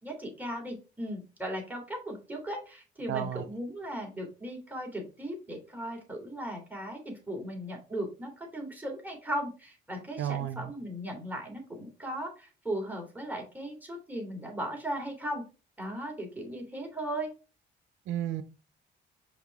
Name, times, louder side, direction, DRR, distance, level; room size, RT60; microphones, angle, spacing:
voice 1, 0.0-15.4 15.8-17.3, right 1 dB, 10° right, 0 dB, 3.2 m, -37 dB
voice 2, 3.1-3.4 10.2-10.7 18.1-18.4, right 11 dB, 85° right, 12 dB, 0.6 m, -32 dB
5.9 x 5.0 x 3.5 m, 0.32 s
cardioid pair, 90°, 20 cm